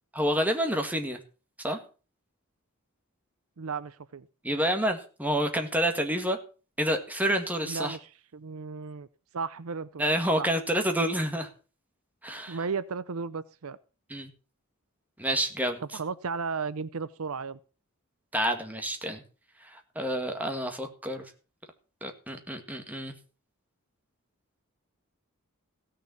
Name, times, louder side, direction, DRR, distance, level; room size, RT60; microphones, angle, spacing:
voice 1, 0.1-1.2 1.6-1.8 4.4-6.4 6.8-8.0 10.0-11.5 12.2-12.6 14.1-14.3 15.2-15.8 18.3-19.2 19.6-21.3 22.0-23.1, equal, 5° right, 5 dB, 1.9 m, -28 dB
voice 2, 3.6-4.3 7.6-9.1 9.3-10.0 10.4-10.5 12.5-13.8 15.9-17.6, right 5 dB, 70° right, 16 dB, 0.6 m, -34 dB
16.0 x 6.7 x 6.9 m, 0.36 s
head